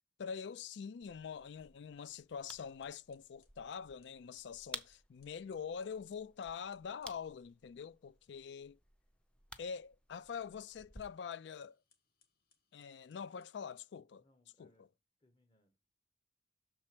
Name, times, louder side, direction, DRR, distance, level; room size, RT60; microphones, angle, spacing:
voice 1, 0.2-8.8 9.6-11.8 12.7-14.2 14.6-14.7, left 6 dB, 75° left, 0.4 m, -45 dB
sound 1, 1.0-11.0, left 1 dB, 5° left, 0.6 m, -55 dB
sound 2, 2.8-7.2 10.3-14.0, left 6 dB, 55° left, 1.7 m, -77 dB
voice 2, 14.1-14.9 15.2-15.8, left 1 dB, 30° left, 1.0 m, -72 dB
6.5 x 4.4 x 5.9 m
head